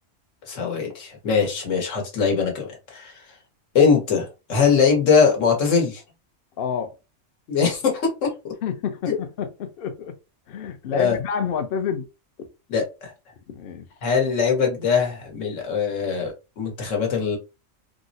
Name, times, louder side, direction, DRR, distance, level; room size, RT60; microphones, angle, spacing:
voice 1, 0.5-3.1 3.7-6.0 7.5-8.3 9.0-9.1 10.9-11.2 12.7-13.1 14.0-17.4, left 6 dB, 80° left, 1.3 m, -21 dB
voice 2, 6.6-6.9 8.6-10.1 10.5-12.1 13.5-13.8, left 7 dB, 60° left, 0.7 m, -28 dB
3.6 x 2.0 x 2.6 m
omnidirectional pair, 1.3 m